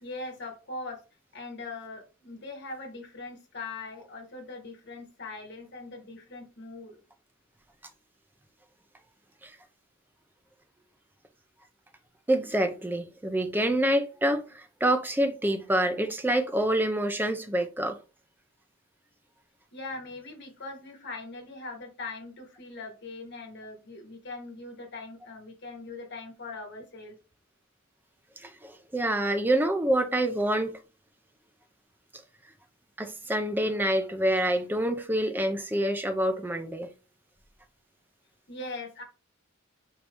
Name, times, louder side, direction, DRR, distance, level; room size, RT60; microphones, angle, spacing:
voice 1, 0.0-1.0 1.3-7.0 19.7-27.2 38.5-39.0, left 3 dB, 55° left, 1.3 m, -41 dB
voice 2, 12.3-18.0 28.4-30.8 33.0-36.9, right 1 dB, 10° right, 0.5 m, -27 dB
4.5 x 2.7 x 3.3 m
head